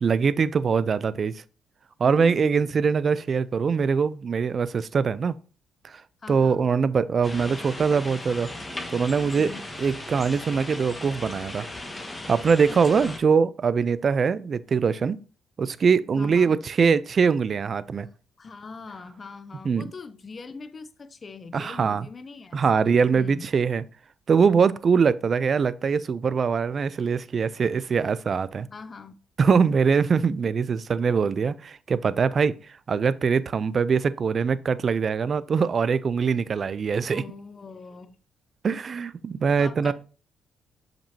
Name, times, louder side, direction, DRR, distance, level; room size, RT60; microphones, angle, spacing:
voice 1, 0.0-1.3 2.0-5.4 5.8-6.0 6.3-8.5 8.9-9.5 9.8-11.7 12.3-15.2 15.6-18.1 19.6-19.9 21.5-22.1 22.5-23.8 24.3-28.7 29.4-32.5 32.9-37.2 38.6-39.9, right 5 dB, 45° right, 0.4 m, -23 dB
voice 2, 2.0-2.7 6.2-6.6 9.2-9.7 12.8-13.2 16.2-16.6 18.4-23.5 28.7-29.1 37.1-38.2 39.6-39.9, left 4 dB, 35° left, 0.6 m, -42 dB
sound 1, 7.2-13.2, left 1 dB, 20° left, 1.6 m, -37 dB
7.3 x 5.2 x 2.8 m
cardioid pair, 90°, 0 cm